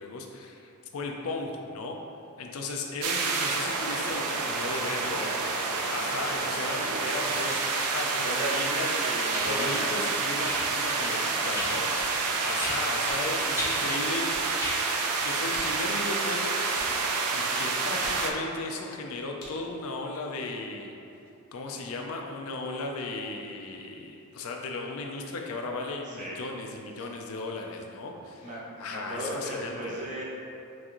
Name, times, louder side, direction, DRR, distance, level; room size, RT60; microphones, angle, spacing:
voice 1, 0.0-2.0 2.4-5.2 5.9-8.8 9.4-12.1 12.4-14.3 15.2-16.6 17.3-20.9 21.5-28.5 28.8-30.0, left 3 dB, 70° left, 2 dB, 0.4 m, -36 dB
sound 1, 3.0-18.3, right 4 dB, 85° right, 0.4 m, -28 dB
voice 2, 6.2-7.0 7.2-7.5 8.2-10.1 11.2-12.4 26.0-26.4 27.0-27.1 28.4-30.3, equal, 35° right, -5 dB, 0.7 m, -37 dB
thin tree branch wipping in the air, 9.3-9.5 10.4-10.6 11.5-11.7 12.6-12.8 13.5-13.7 14.6-14.8 15.7-15.8, equal, 10° right, 1.2 m, -34 dB
sound 2, 11.5-19.8, left 1 dB, 85° left, 1.2 m, -49 dB
5.9 x 2.5 x 3.0 m, 2.7 s
head